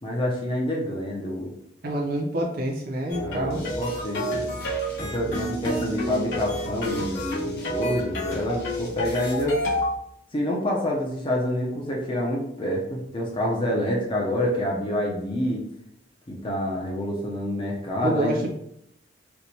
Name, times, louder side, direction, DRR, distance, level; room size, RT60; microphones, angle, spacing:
voice 1, 0.0-1.5 3.1-4.4 5.0-9.6 10.3-15.6 16.3-18.4, left 1 dB, 30° left, -2 dB, 0.5 m, -27 dB
voice 2, 1.8-3.7 18.0-18.5, right 1 dB, 50° right, -1 dB, 0.5 m, -27 dB
sound 1, 3.1-10.0, equal, 75° left, 1.3 m, -30 dB
sound 2, 3.5-9.4, left 1 dB, 55° left, 0.9 m, -43 dB
4.3 x 2.1 x 2.7 m, 0.76 s
head